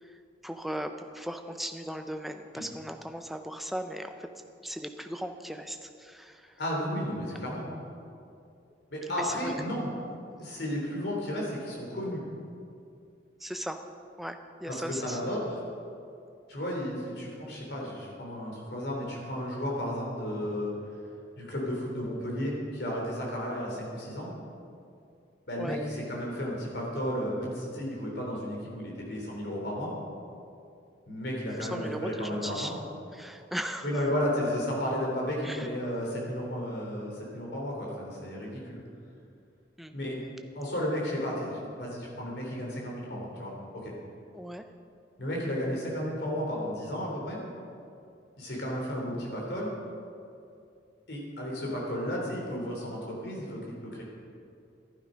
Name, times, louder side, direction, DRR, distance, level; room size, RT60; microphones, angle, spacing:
voice 1, 0.0-4.3 4.6-6.5 9.0-9.5 13.4-13.8 14.2-15.2 25.6-25.8 31.6-32.7 33.1-34.0 35.4-35.7 39.8-39.9 44.3-44.7, equal, ahead, 6 dB, 0.5 m, -37 dB
voice 2, 6.6-7.7 8.9-9.9 10.4-12.3 14.7-15.6 16.5-20.7 21.4-24.3 25.5-29.9 31.1-32.8 33.8-38.8 39.9-40.2 40.5-43.9 45.2-47.4 48.4-49.7 51.1-54.0, equal, 60° left, -3 dB, 3.4 m, -33 dB
12.0 x 11.5 x 5.1 m, 2.5 s
head